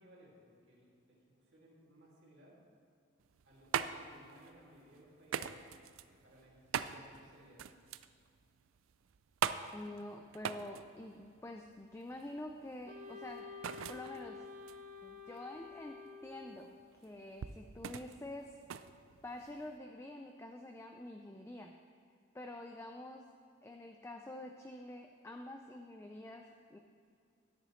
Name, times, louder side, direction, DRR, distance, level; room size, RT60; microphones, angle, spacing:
voice 1, 0.0-2.6 3.4-5.5 6.2-7.6, right 1 dB, 60° right, -5 dB, 2.4 m, -61 dB
sound 1, 3.2-19.8, right 8 dB, 85° right, 0.4 m, -43 dB
voice 2, 9.7-14.4 15.0-18.6 19.2-21.8 22.3-23.3 23.6-26.8, left 1 dB, 15° left, 4 dB, 0.3 m, -47 dB
Wind instrument woodwind instrument, 12.9-16.8, left 5 dB, 35° right, 0.7 m, -50 dB
13.0 x 9.8 x 3.1 m, 2.3 s
head